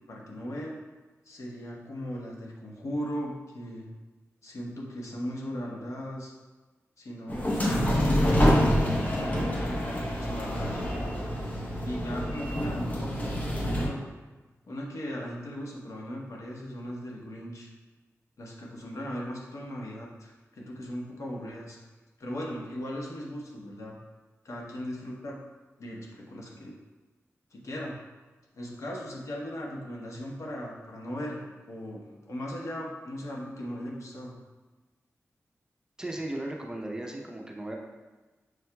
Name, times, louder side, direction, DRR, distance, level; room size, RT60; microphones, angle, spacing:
voice 1, 0.1-0.8 1.3-3.9 4.4-6.3 7.0-11.2 11.8-14.0 14.6-17.7 18.4-21.8 22.2-24.0 24.4-25.4 25.8-26.8 27.5-28.0 28.5-34.3, equal, 70° left, -3 dB, 0.8 m, -38 dB
sound 1, 7.3-13.9, equal, 30° left, 0.7 m, -26 dB
voice 2, 36.0-37.8, right 1 dB, 15° right, 0 dB, 0.5 m, -36 dB
6.2 x 2.8 x 2.2 m, 1.2 s
wide cardioid pair, 75°, 5 cm